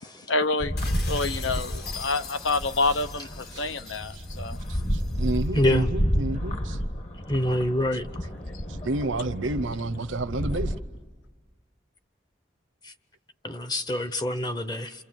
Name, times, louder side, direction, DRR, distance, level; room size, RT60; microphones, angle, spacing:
voice 1, 0.3-0.7 1.1-4.6, left 3 dB, 75° left, 12 dB, 0.8 m, -27 dB
sound 1, 0.6-10.8, equal, 35° left, 1.3 m, -31 dB
sound 2, 0.8-5.5, left 6 dB, 55° left, 1.7 m, -42 dB
voice 2, 3.5-4.2 4.9-6.8 8.7-10.7, right 2 dB, 85° right, 13 dB, 0.8 m, -30 dB
voice 3, 5.5-5.9 7.3-8.0 13.4-14.9, left 1 dB, 20° left, 11 dB, 0.8 m, -25 dB
28.0 x 27.5 x 7.6 m, 1.3 s
head